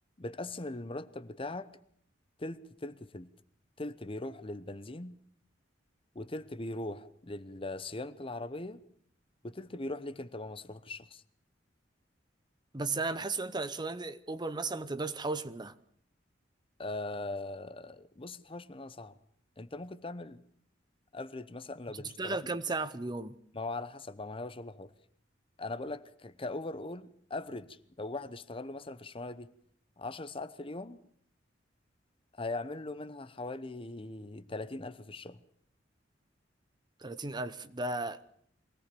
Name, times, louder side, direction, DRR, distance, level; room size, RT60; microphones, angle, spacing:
voice 1, 0.2-1.7 2.4-3.3 3.8-5.2 6.1-8.8 9.4-11.2 16.8-19.1 19.6-20.4 21.1-22.4 23.5-24.9 25.6-29.5 30.0-31.0 32.3-35.4, left 2 dB, 30° left, 0.9 m, -40 dB
voice 2, 12.7-15.7 22.2-23.4 37.0-38.2, right 3 dB, 25° right, 0.8 m, -35 dB
23.5 x 18.0 x 7.0 m
head